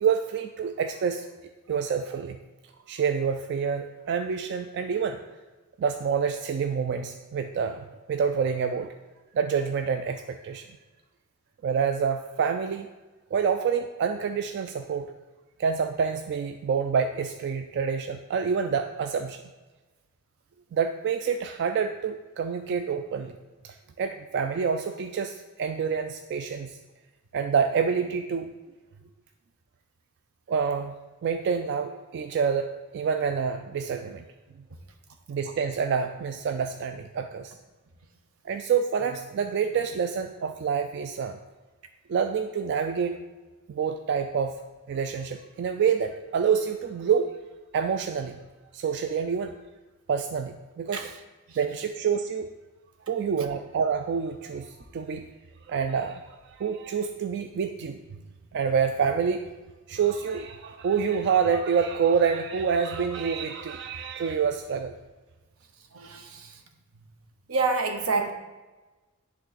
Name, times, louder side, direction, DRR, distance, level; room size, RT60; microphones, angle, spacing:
voice 1, 0.0-1.3 1.7-2.4 2.9-5.2 5.8-8.9 9.3-10.7 11.6-12.9 13.3-15.1 15.6-19.4 20.7-23.4 23.6-26.8 27.3-28.5 30.5-30.9 31.2-34.2 35.3-37.6 38.4-41.4 42.1-43.2 43.7-44.6 44.9-47.3 47.7-48.4 48.7-49.5 50.1-51.0 51.6-52.5 53.1-55.3 55.7-58.0 58.5-59.4 59.9-64.9, right 6 dB, 55° right, 7 dB, 0.3 m, -27 dB
voice 2, 65.9-66.6 67.5-68.3, right 3 dB, 80° right, 6 dB, 0.8 m, -28 dB
10.5 x 3.6 x 4.0 m, 1.2 s
head